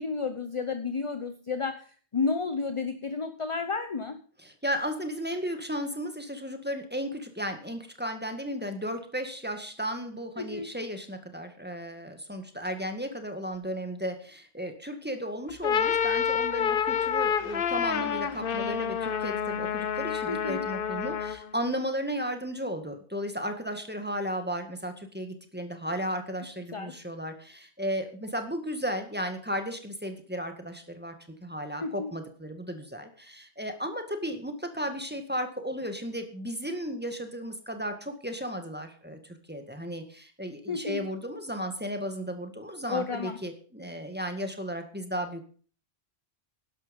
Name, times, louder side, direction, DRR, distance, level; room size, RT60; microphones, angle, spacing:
voice 1, 0.0-1.8 2.1-4.2 10.4-10.7 20.3-20.7 26.7-27.0 31.8-32.1 40.7-41.0 42.9-43.4, left 4 dB, 30° left, 9 dB, 0.9 m, -31 dB
voice 2, 4.4-31.1 31.4-39.2 39.5-45.4, equal, 10° right, 6 dB, 1.9 m, -34 dB
sound 1, 15.5-21.5, left 7 dB, 60° left, 1.0 m, -28 dB
12.0 x 11.5 x 5.4 m, 0.43 s
omnidirectional pair, 1.1 m